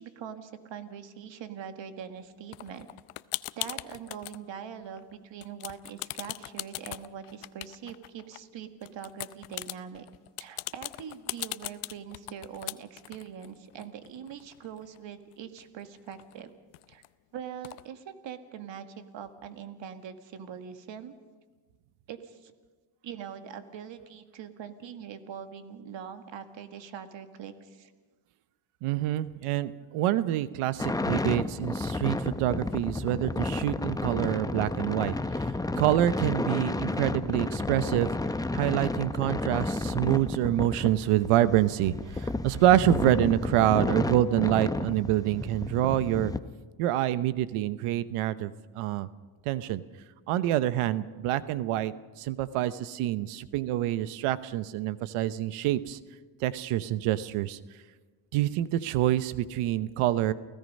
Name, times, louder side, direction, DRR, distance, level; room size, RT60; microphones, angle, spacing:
voice 1, 0.0-2.9 3.6-10.1 10.4-16.5 16.9-17.0 17.3-21.2 22.1-22.5 23.0-27.9, right 8 dB, 60° right, 8 dB, 1.9 m, -42 dB
sound 1, 2.5-4.4 4.8-5.2 5.4-8.4 8.8-15.0 15.3-15.4 15.6-17.1 17.6-17.8, left 20 dB, 80° left, 0.7 m, -39 dB
voice 2, 28.8-35.1 35.8-38.1 38.5-46.3 46.8-49.1 49.4-49.8 50.3-51.9 52.2-56.0 56.4-57.6 58.3-60.3, right 13 dB, 85° right, 15 dB, 1.0 m, -26 dB
sound 2, 30.8-46.4, left 2 dB, 5° left, 0.7 m, -32 dB
29.0 x 16.5 x 5.4 m, 1.3 s
cardioid pair, 95°, 50 cm